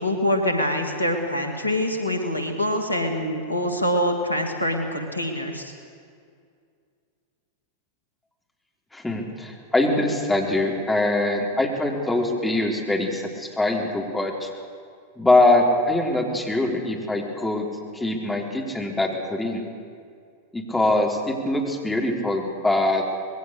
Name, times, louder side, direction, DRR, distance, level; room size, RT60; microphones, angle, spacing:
voice 1, 0.0-5.7, equal, 85° left, 4 dB, 2.6 m, -25 dB
voice 2, 8.9-14.5 15.2-17.7 17.9-19.6 20.5-23.0, left 2 dB, 10° left, 0 dB, 3.9 m, -23 dB
26.0 x 21.0 x 6.8 m, 2.2 s
figure-of-eight pair, 90°, 0 cm